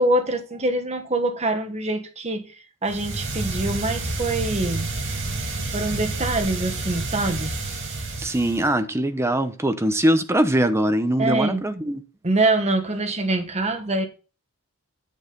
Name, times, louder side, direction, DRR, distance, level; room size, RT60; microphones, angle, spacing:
voice 1, 0.0-4.9 5.6-7.5 11.2-11.6 12.2-14.1, right 2 dB, 30° right, 1.4 m, -24 dB
sound 1, 2.8-8.8, right 2 dB, 60° right, 2.6 m, -29 dB
voice 2, 8.2-12.0, right 1 dB, 10° right, 0.8 m, -22 dB
10.0 x 6.5 x 3.9 m
head